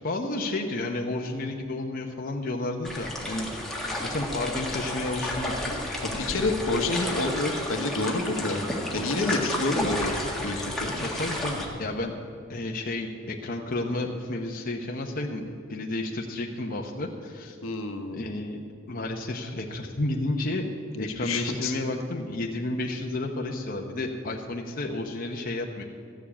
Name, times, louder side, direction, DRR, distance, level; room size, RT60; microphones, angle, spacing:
voice 1, 0.0-3.5 4.0-5.7 6.1-6.4 11.0-12.1 12.5-15.4 15.7-17.6 18.1-18.6 18.9-20.7 21.0-25.8, left 2 dB, 45° left, 1 dB, 0.9 m, -31 dB
sound 1, 2.8-11.7, left 1 dB, ahead, 1.7 m, -32 dB
voice 2, 6.0-8.7 8.9-10.9 17.6-18.2 20.9-21.8, left 2 dB, 70° left, 5 dB, 1.2 m, -28 dB
14.0 x 7.1 x 8.6 m, 2.4 s
head